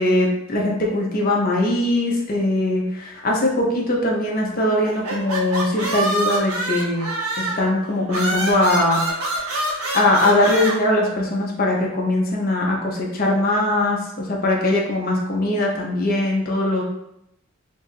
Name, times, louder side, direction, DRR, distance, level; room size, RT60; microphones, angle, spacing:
voice 1, 0.0-7.1 7.4-9.1 9.9-16.8, left 1 dB, 40° left, -2 dB, 0.7 m, -21 dB
sound 1, 4.8-7.7 8.1-10.7, right 1 dB, 85° right, 0.9 m, -25 dB
2.7 x 2.5 x 4.0 m, 0.80 s
head